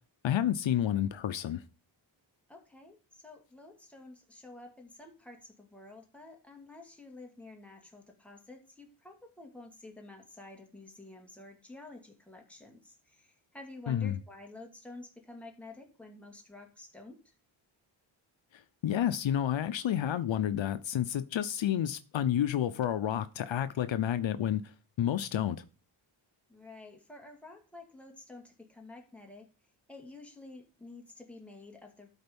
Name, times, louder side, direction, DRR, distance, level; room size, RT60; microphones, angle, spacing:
voice 1, 0.2-1.6 13.9-14.2 18.5-25.6, left 10 dB, 65° left, 0.8 m, -30 dB
voice 2, 2.5-17.3 26.5-29.5 29.9-32.1, left 2 dB, 5° left, 2.3 m, -50 dB
12.5 x 4.4 x 5.3 m
wide cardioid pair, 115°, 48 cm